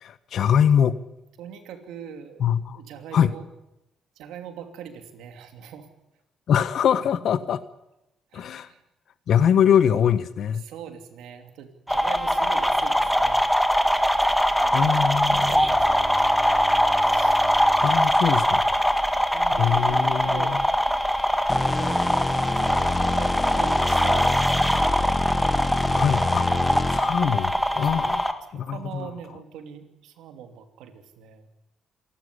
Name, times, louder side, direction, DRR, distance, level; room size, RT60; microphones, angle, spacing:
voice 1, 0.0-1.0 2.4-2.8 3.1-3.3 6.5-7.6 8.3-8.7 9.3-10.6 14.7-15.5 17.8-18.6 19.6-20.6 25.9-26.6 26.9-29.1, left 8 dB, 65° left, 1.3 m, -23 dB
voice 2, 1.4-2.4 2.7-3.4 4.2-5.9 8.3-8.8 10.6-13.4 14.6-17.4 18.7-18.8 19.3-20.6 21.5-22.1 22.4-24.5 28.5-31.5, right 8 dB, 90° right, 2.9 m, -42 dB
sound 1, 11.9-28.3, equal, ahead, 1.8 m, -22 dB
Bowed string instrument, 15.1-19.4, right 3 dB, 20° right, 1.9 m, -44 dB
sound 2, 21.5-27.3, left 3 dB, 20° left, 1.2 m, -27 dB
27.5 x 12.0 x 9.9 m
cardioid pair, 90°, 0 cm